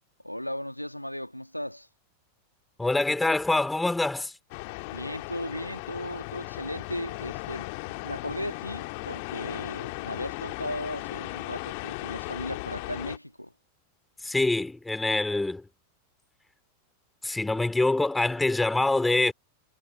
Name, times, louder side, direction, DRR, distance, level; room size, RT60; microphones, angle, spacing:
voice 1, 0.2-1.9 4.9-7.7 8.0-13.5, left 1 dB, 90° left, 2.1 m, -36 dB
voice 2, 2.8-4.3 14.2-15.6 17.2-19.3, left 2 dB, 5° left, 3.0 m, -25 dB
sound 1, 4.5-13.2, left 29 dB, 45° left, 2.1 m, -37 dB
figure-of-eight pair, 90°, 0 cm